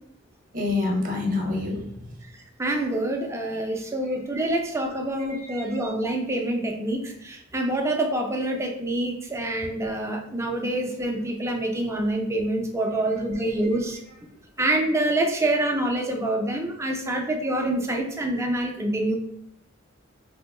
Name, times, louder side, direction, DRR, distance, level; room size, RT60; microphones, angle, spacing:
voice 1, 0.5-1.8 4.1-4.2 4.5-4.6 5.3-5.8 13.1-13.2, left 3 dB, 40° right, 1 dB, 0.8 m, -28 dB
voice 2, 2.6-14.0 14.6-19.2, right 1 dB, 15° right, 2 dB, 0.5 m, -26 dB
3.0 x 2.8 x 3.6 m, 0.76 s
head